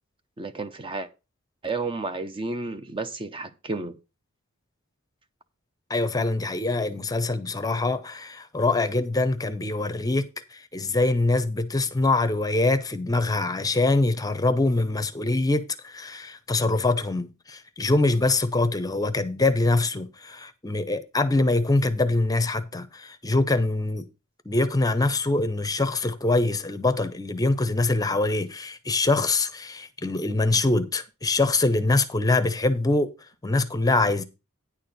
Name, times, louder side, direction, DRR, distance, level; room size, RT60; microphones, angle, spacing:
voice 1, 0.4-1.1 1.6-4.0, right 3 dB, 25° right, 0.6 m, -31 dB
voice 2, 5.9-24.1 24.5-33.1 33.4-34.2, left 2 dB, 15° left, 0.7 m, -24 dB
9.9 x 4.4 x 6.6 m
head